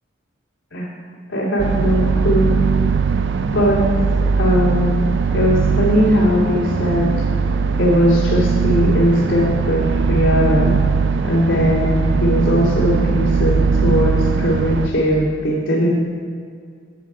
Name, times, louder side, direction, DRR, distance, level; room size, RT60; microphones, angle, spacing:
voice 1, 1.3-2.6 3.4-3.8 4.4-5.0 5.3-7.1 7.8-10.7 11.2-15.9, equal, 85° left, -5 dB, 2.4 m, -18 dB
sound 1, 1.6-14.9, right 5 dB, 65° right, 0.4 m, -19 dB
9.0 x 6.6 x 4.9 m, 2.1 s
head